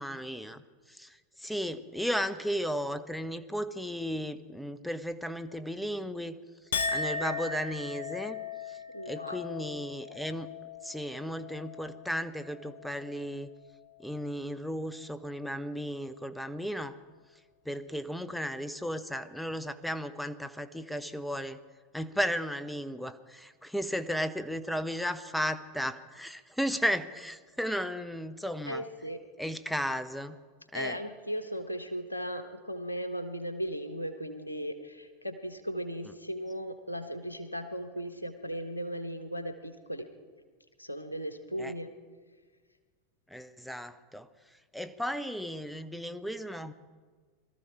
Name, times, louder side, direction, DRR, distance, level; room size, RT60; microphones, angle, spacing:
voice 1, 0.0-6.4 6.9-8.4 8.7-8.8 9.1-10.5 10.8-13.5 14.0-17.0 17.6-21.6 21.9-28.8 29.4-30.4 30.7-31.0 41.6-41.7 43.3-44.3 44.7-46.7, equal, ahead, 12 dB, 0.8 m, -35 dB
Chink clink, 6.7-13.3 13.7-14.2, left 4 dB, 65° left, 0.9 m, -38 dB
voice 2, 8.9-9.4 28.7-29.2 30.7-40.1 40.8-41.9, equal, 85° left, 9 dB, 1.2 m, -37 dB
22.0 x 13.5 x 4.7 m, 1.5 s
figure-of-eight pair, 85°, 0 cm